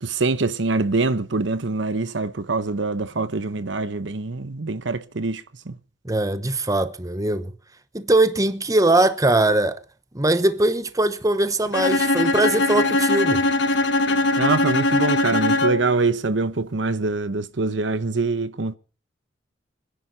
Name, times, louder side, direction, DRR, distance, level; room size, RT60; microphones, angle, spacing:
voice 1, 0.0-5.8 14.4-18.8, right 3 dB, 80° right, 1.0 m, -24 dB
voice 2, 6.0-7.5 7.9-9.8 10.1-13.4, right 2 dB, 20° right, 1.0 m, -21 dB
Bowed string instrument, 11.7-16.0, left 2 dB, 70° left, 1.3 m, -21 dB
26.0 x 10.5 x 4.1 m
head